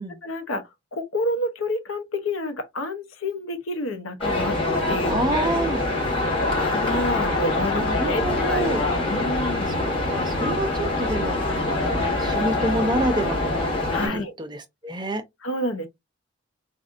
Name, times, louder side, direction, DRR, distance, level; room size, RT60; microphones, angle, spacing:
voice 1, 0.2-4.6 4.9-5.2 5.4-5.5 6.1-9.8 13.9-14.3 15.4-15.9, left 1 dB, 85° left, 0.8 m, -29 dB
sound 1, 4.2-14.1, left 2 dB, 25° left, 1.4 m, -24 dB
voice 2, 5.1-5.8 7.7-8.8 9.7-13.7 14.0-15.2, right 1 dB, 20° right, 0.5 m, -28 dB
4.1 x 2.6 x 2.4 m
head